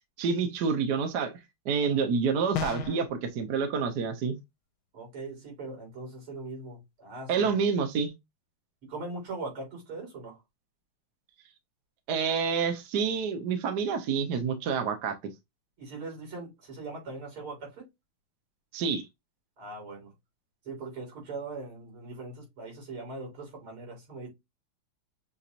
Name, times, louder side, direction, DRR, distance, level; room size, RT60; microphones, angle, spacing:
voice 1, 0.2-1.3 1.7-4.4 7.3-8.1 12.1-15.1 18.7-19.0, right 5 dB, 60° right, 1.2 m, -28 dB
voice 2, 1.8-2.1 4.9-7.5 8.8-10.4 15.8-17.9 19.6-20.1 20.6-24.3, right 3 dB, 80° right, 4.2 m, -40 dB
sound 1, 2.5-3.1, left 8 dB, 80° left, 1.4 m, -32 dB
6.8 x 2.9 x 2.5 m
omnidirectional pair, 2.3 m